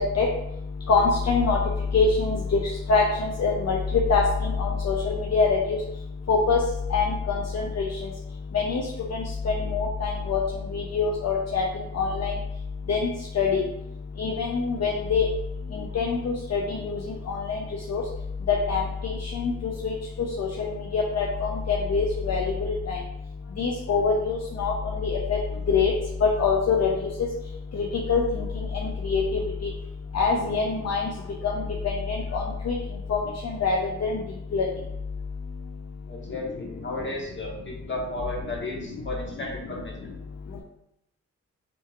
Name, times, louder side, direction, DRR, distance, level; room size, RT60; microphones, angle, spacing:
voice 1, 0.9-1.6 1.9-2.6 2.9-3.8 4.1-4.2 4.6-5.5 6.3-6.6 6.9-7.0 7.8-7.9 8.5-8.8 9.7-10.4 10.7-11.6 12.0-12.3 12.9-13.0 13.4-13.6 14.2-15.2 16.0-16.2 16.5-16.6 16.9-17.0 17.3-17.6 17.9-18.0 18.5-18.8 19.8-19.9 20.4-20.7 20.9-23.0 23.6-24.7 25.0-25.4 25.7-25.9 26.2-26.9 28.1-28.2 29.1-29.2 30.1-31.0 32.3-32.7 33.1-33.2 33.6-34.1 34.5-34.6, left 5 dB, 60° left, -2 dB, 0.7 m, -23 dB
voice 2, 36.1-40.0, left 2 dB, 40° left, -1 dB, 1.3 m, -34 dB
6.1 x 2.9 x 2.5 m, 0.81 s
cardioid pair, 65°, 30 cm